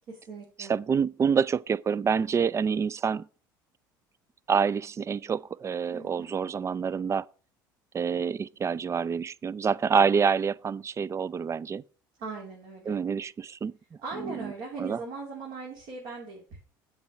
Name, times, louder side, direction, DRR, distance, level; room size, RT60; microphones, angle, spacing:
voice 1, 0.1-0.7 5.9-6.3 12.2-13.0 14.0-16.6, right 4 dB, 60° right, 2.8 m, -39 dB
voice 2, 0.7-3.3 4.5-7.2 7.9-11.8 12.9-13.7 14.2-14.3 14.8-15.0, right 6 dB, 25° right, 0.4 m, -27 dB
7.3 x 4.6 x 6.5 m
hypercardioid pair, 75°, 11 cm